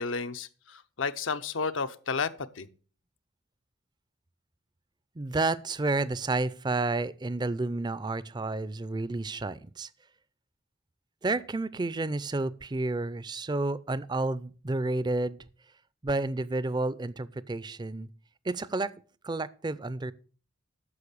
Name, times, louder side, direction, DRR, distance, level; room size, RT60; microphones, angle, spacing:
voice 1, 0.0-2.7, left 5 dB, 75° left, 0.8 m, -32 dB
voice 2, 5.2-9.9 11.2-15.4 16.0-18.1 18.4-19.0 19.2-20.1, right 2 dB, 20° right, 0.4 m, -30 dB
9.8 x 6.6 x 6.7 m
head